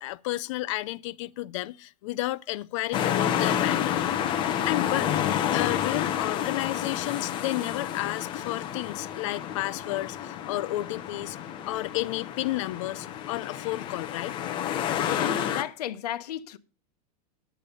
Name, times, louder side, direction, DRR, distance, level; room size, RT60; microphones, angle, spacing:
voice 1, 0.0-4.0 4.7-5.1 5.5-11.4 11.7-14.3, left 17 dB, 50° left, 0.5 m, -32 dB
sound 1, 2.9-15.6, left 10 dB, 25° left, 0.8 m, -29 dB
voice 2, 15.0-16.6, left 12 dB, 80° left, 0.9 m, -34 dB
11.0 x 8.4 x 5.3 m
supercardioid pair, 165°, 20 cm